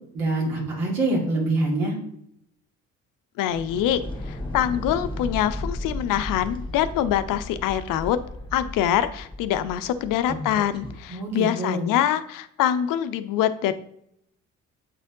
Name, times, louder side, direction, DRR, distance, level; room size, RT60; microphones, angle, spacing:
voice 1, 0.1-2.0 11.1-11.9, right 2 dB, 75° right, -2 dB, 2.2 m, -25 dB
voice 2, 3.4-4.0 4.3-8.2 8.5-13.7, left 11 dB, 55° left, 12 dB, 0.6 m, -24 dB
sound 1, 3.5-11.0, left 1 dB, 10° left, 1.4 m, -35 dB
7.9 x 4.2 x 3.7 m, 0.73 s
figure-of-eight pair, 45°, 39 cm